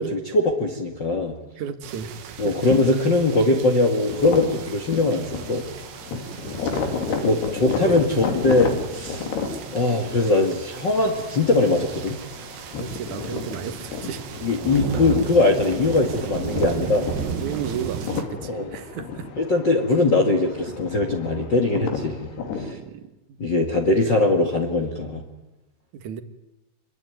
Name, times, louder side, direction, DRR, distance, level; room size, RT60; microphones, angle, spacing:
voice 1, 0.0-1.3 2.4-5.7 7.2-9.3 9.7-12.2 14.4-17.1 18.4-18.7 19.4-22.3 22.6-22.8 23.4-25.2, left 2 dB, 40° left, 3 dB, 1.8 m, -21 dB
voice 2, 1.6-2.6 6.2-6.8 7.8-8.0 12.8-14.2 17.4-19.3 22.6-23.1 25.9-26.2, right 8 dB, 55° right, 9 dB, 2.5 m, -34 dB
sound 1, 1.8-18.2, right 8 dB, 90° right, 3.9 m, -35 dB
sound 2, 4.1-22.7, left 5 dB, 75° left, 4.6 m, -32 dB
26.0 x 23.0 x 9.3 m, 1.0 s
omnidirectional pair, 4.7 m